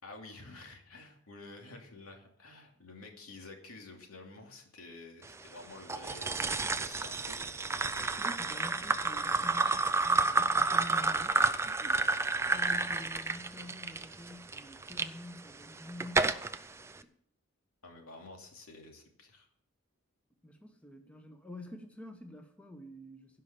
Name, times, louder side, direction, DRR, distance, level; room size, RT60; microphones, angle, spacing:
voice 1, 0.0-7.4 12.6-12.8 17.8-19.5, left 2 dB, 85° left, 2 dB, 2.7 m, -50 dB
sound 1, 5.9-15.1 15.6-16.6, right 3 dB, 10° right, 0.4 m, -30 dB
voice 2, 8.2-16.4 20.4-23.4, left 1 dB, 5° left, 4 dB, 1.0 m, -48 dB
16.5 x 5.6 x 6.8 m, 0.65 s
head